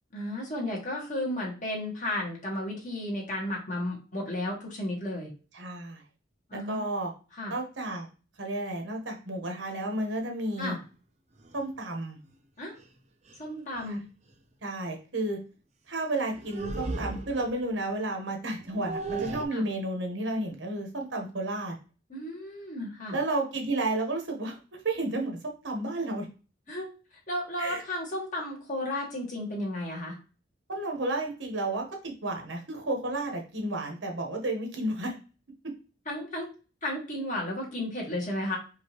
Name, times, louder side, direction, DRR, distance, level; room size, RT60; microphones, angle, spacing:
voice 1, 0.1-5.3 6.5-6.9 7.3-7.5 10.6-10.8 12.6-12.7 13.4-14.0 19.5-19.6 22.1-23.1 26.7-26.9 27.3-30.2 36.0-36.5 36.8-38.6, left 1 dB, 45° left, -2 dB, 1.7 m, -33 dB
voice 2, 5.5-6.0 6.5-7.1 7.5-8.1 8.4-10.7 11.5-12.2 13.9-14.0 14.6-15.4 15.9-21.7 23.1-24.6 24.8-26.3 27.6-27.8 30.7-35.1, right 2 dB, 75° right, 2 dB, 1.3 m, -32 dB
sound 1, 11.4-11.6 12.8-12.9 13.3-13.4 13.8-14.0 16.3-17.6 18.5-19.5, right 3 dB, 40° right, 0.6 m, -36 dB
5.1 x 2.8 x 3.1 m, 0.33 s
head